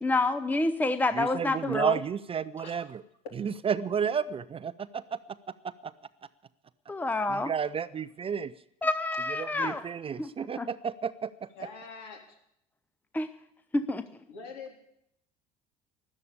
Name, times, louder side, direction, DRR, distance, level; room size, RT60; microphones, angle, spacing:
voice 1, 0.0-2.0 6.9-7.5 8.8-9.8 10.2-10.3 10.6-10.7 13.1-13.3 13.7-14.1, left 2 dB, 10° left, 11 dB, 0.8 m, -28 dB
voice 2, 1.1-3.0 3.4-5.2 5.6-5.9 7.3-8.5 9.4-9.7 10.0-11.5, right 7 dB, 25° right, 16 dB, 0.6 m, -31 dB
voice 3, 11.6-12.4 14.3-14.8, left 4 dB, 65° left, 2 dB, 3.6 m, -44 dB
13.5 x 12.0 x 8.5 m, 0.76 s
figure-of-eight pair, 60°, 21 cm